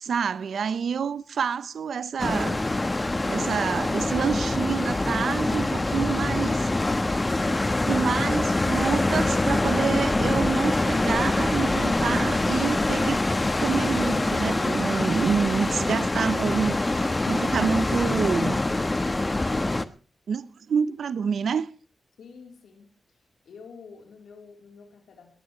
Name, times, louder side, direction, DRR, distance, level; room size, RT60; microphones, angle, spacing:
voice 1, 0.0-2.6 3.3-6.6 7.8-13.2 13.6-18.6 20.3-21.7, right 6 dB, 80° right, 0.8 m, -28 dB
sound 1, 2.2-19.8, left 2 dB, 30° left, 1.2 m, -24 dB
voice 2, 22.2-22.9 23.4-25.4, left 5 dB, 90° left, 3.8 m, -48 dB
20.0 x 19.5 x 3.3 m
cardioid pair, 55°, 0 cm